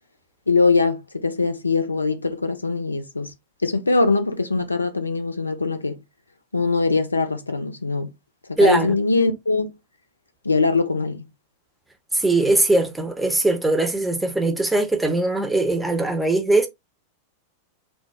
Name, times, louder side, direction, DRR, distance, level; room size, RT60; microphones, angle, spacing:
voice 1, 0.5-3.3 3.6-6.0 6.5-8.1 8.5-9.7 10.4-11.3, left 3 dB, 80° left, 0.5 m, -22 dB
voice 2, 8.6-9.0 12.1-16.7, right 2 dB, 5° right, 0.7 m, -20 dB
3.3 x 2.1 x 3.0 m
figure-of-eight pair, 90°, 0 cm